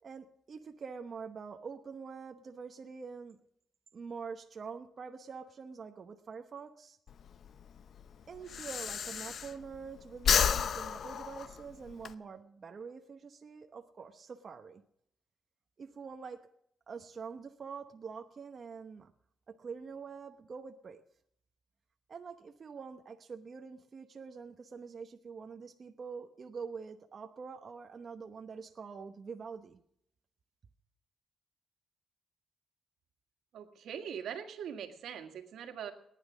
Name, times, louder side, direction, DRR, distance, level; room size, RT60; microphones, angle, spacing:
voice 1, 0.0-3.4 3.9-7.0 8.3-14.8 15.8-16.5 16.9-19.1 19.5-21.0 22.1-29.8, right 5 dB, 45° right, 5 dB, 0.9 m, -45 dB
Breathing, 7.1-9.8 10.1-12.1, left 7 dB, 60° left, 0.7 m, -31 dB
voice 2, 33.5-35.9, right 8 dB, 80° right, 6 dB, 1.8 m, -42 dB
19.0 x 10.5 x 6.1 m, 0.73 s
cardioid pair, 110°, 0 cm